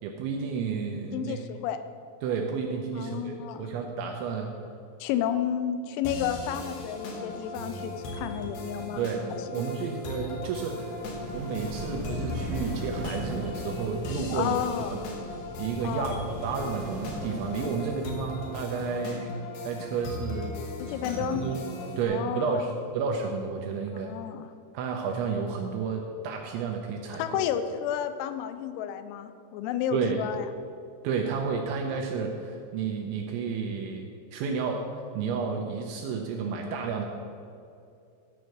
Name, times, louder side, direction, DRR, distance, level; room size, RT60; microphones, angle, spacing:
voice 1, 0.0-1.4 2.2-4.5 9.0-9.2 9.5-11.0 11.3-14.6 14.9-15.0 15.6-19.4 19.6-20.6 20.9-21.0 21.3-21.6 22.0-24.1 24.7-27.4 29.9-30.2 31.0-34.8 35.1-37.1, right 5 dB, 80° right, 2 dB, 2.7 m, -31 dB
voice 2, 1.1-1.8 2.9-3.7 5.0-9.1 9.5-9.6 14.3-15.0 15.8-16.2 20.8-21.4 22.1-22.7 23.9-24.5 27.2-30.5, left 9 dB, 90° left, 10 dB, 3.3 m, -31 dB
sound 1, 6.0-22.0, left 2 dB, 70° left, 2.5 m, -38 dB
sound 2, 11.0-18.3, right 1 dB, 40° right, 2.4 m, -39 dB
13.5 x 4.6 x 6.5 m, 2.5 s
omnidirectional pair, 5.9 m